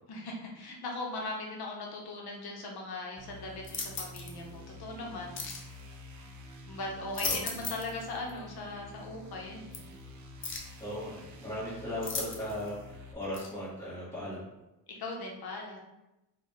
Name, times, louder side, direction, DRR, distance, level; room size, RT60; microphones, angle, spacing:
voice 1, 0.1-5.8 6.7-9.8 14.9-15.8, left 2 dB, 60° left, -1 dB, 0.9 m, -39 dB
sound 1, 3.2-13.1, left 1 dB, 45° right, 0.5 m, -49 dB
sound 2, 3.6-4.4 5.3-5.7 6.9-8.0 8.3-8.4 9.7-9.8 10.4-10.8 12.0-12.7 13.3-13.5, left 4 dB, 30° left, 0.4 m, -37 dB
voice 2, 10.8-12.7 13.1-14.4, left 1 dB, 10° left, -14 dB, 1.2 m, -37 dB
3.8 x 2.4 x 3.2 m, 0.95 s
wide cardioid pair, 180°, 42 cm